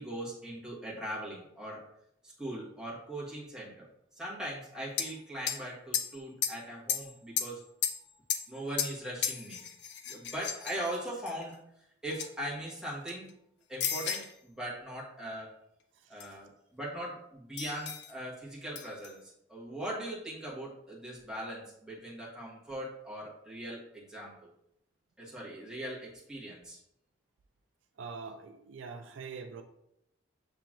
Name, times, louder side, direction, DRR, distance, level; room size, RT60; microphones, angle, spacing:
voice 1, 0.0-1.8 2.2-3.8 4.1-7.6 8.5-9.6 10.1-11.6 12.0-13.3 13.7-15.5 16.1-24.5 25.2-26.8, right 1 dB, 5° right, -7 dB, 1.2 m, -40 dB
sound 1, 5.0-5.2 5.5-5.6 5.9-6.6 6.9-7.6 7.8-9.0 9.2-11.4 12.1-12.3 12.7-13.3 13.8-14.3 16.2-16.3 17.6-18.1 18.8-19.1, left 8 dB, 60° left, 0.4 m, -34 dB
voice 2, 15.9-16.4 28.0-29.6, right 5 dB, 75° right, 6 dB, 0.4 m, -44 dB
7.1 x 2.9 x 2.4 m, 0.78 s
head